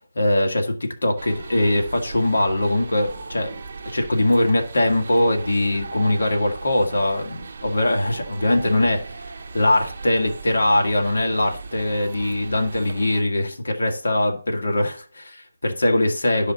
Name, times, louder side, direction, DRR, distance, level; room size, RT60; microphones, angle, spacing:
voice 1, 0.2-3.6 3.9-9.2 9.5-16.5, left 1 dB, 80° left, 2 dB, 1.9 m, -21 dB
sound 1, 1.2-13.2, right 4 dB, 35° right, 0.7 m, -38 dB
11.0 x 4.9 x 3.9 m, 0.41 s
hypercardioid pair, 180°, 0 cm